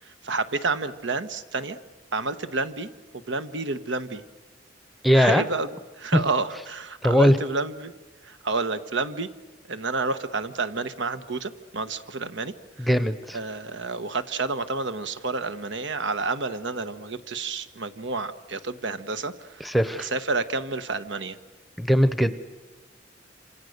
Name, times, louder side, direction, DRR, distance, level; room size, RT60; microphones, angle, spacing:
voice 1, 0.2-1.8 2.1-2.9 3.3-4.2 5.1-5.7 6.0-7.9 8.2-9.3 9.7-12.5 13.3-19.3 20.0-21.4, right 3 dB, 70° right, 11 dB, 1.2 m, -29 dB
voice 2, 5.0-5.4 6.1-6.2 7.0-7.4 12.8-13.4 19.6-20.1 21.8-22.3, equal, ahead, 12 dB, 0.8 m, -20 dB
27.0 x 27.0 x 6.6 m, 1.2 s
head